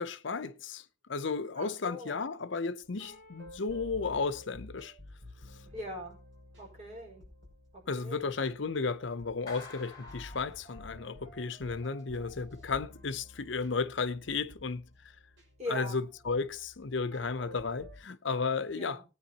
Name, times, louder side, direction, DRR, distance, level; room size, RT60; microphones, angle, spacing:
voice 1, 0.0-4.9 5.4-5.6 7.9-14.9 15.7-19.0, left 4 dB, 65° left, 0.7 m, -34 dB
voice 2, 1.6-2.2 5.7-6.2 6.6-7.2 7.9-8.3 15.6-16.0 18.7-19.0, left 1 dB, 35° right, 5.4 m, -41 dB
sound 1, 2.8-18.0, left 1 dB, 70° right, 5.8 m, -52 dB
Clapping, 9.5-11.2, left 2 dB, 20° left, 3.6 m, -50 dB
19.5 x 9.4 x 2.9 m
head